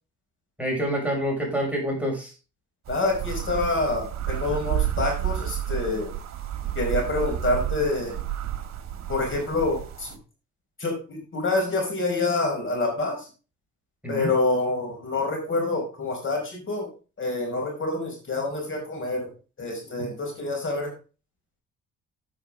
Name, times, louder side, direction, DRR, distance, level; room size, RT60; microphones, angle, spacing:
voice 1, 0.6-2.3 14.0-14.3, equal, 5° right, -1 dB, 5.9 m, -27 dB
voice 2, 2.9-6.1 6.7-8.2 9.1-10.2 10.8-13.3 14.1-16.9 17.2-19.3 19.6-20.9, left 2 dB, 40° left, 1 dB, 5.0 m, -27 dB
sound 1, 2.9-10.2, right 12 dB, 60° right, 1.5 m, -31 dB
9.7 x 8.6 x 3.7 m, 0.33 s
cardioid pair, 90°, 30 cm